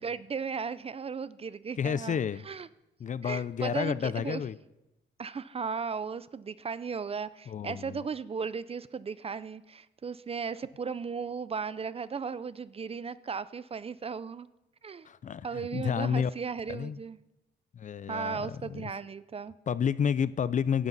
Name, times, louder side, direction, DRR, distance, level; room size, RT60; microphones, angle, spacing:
voice 1, 0.0-2.2 2.5-2.7 3.2-4.4 5.2-14.5 14.8-15.1 15.4-17.2 18.1-19.6, right 5 dB, 30° right, 0.5 m, -36 dB
voice 2, 1.8-2.4 3.0-4.6 7.5-8.0 15.0-16.3 16.7-17.0 17.7-18.9 19.7-20.9, left 7 dB, 40° left, 0.5 m, -30 dB
16.5 x 11.5 x 4.1 m
cardioid pair, 90°, 20 cm